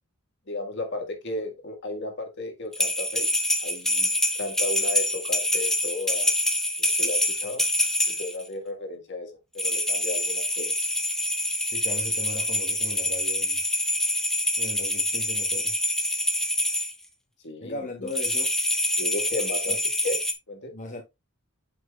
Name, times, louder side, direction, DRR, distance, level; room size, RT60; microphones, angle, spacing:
voice 1, 0.5-3.3 3.6-6.3 6.8-7.6 8.1-10.9 17.4-18.1 19.0-20.7, left 2 dB, 55° left, 1.7 m, -34 dB
sound 1, 2.7-8.4 9.6-16.9 18.1-20.3, left 1 dB, ahead, 0.7 m, -26 dB
voice 2, 11.7-13.6 14.6-15.7 17.6-18.5 19.7-19.8 20.7-21.0, left 2 dB, 35° left, 1.1 m, -37 dB
8.1 x 5.9 x 2.4 m
head